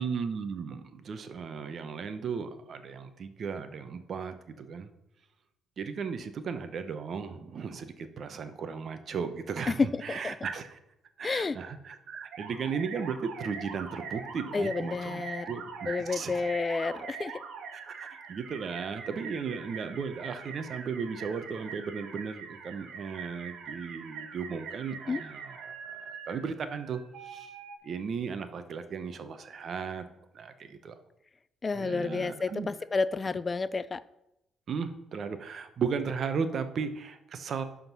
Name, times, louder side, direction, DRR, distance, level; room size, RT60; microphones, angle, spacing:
voice 1, 0.0-4.9 5.8-10.8 11.2-15.2 15.5-16.5 17.8-27.5 27.8-30.1 30.3-30.9 31.7-32.7 34.7-37.6, right 6 dB, 55° right, 10 dB, 0.9 m, -36 dB
voice 2, 9.7-10.4 11.2-11.6 14.5-15.5 15.9-17.4 25.1-25.2 31.6-34.0, left 4 dB, 30° left, 16 dB, 0.3 m, -30 dB
sound 1, 12.3-27.8, right 6 dB, 80° right, 1.2 m, -43 dB
11.5 x 3.8 x 6.0 m, 0.87 s
cardioid pair, 90°, 0 cm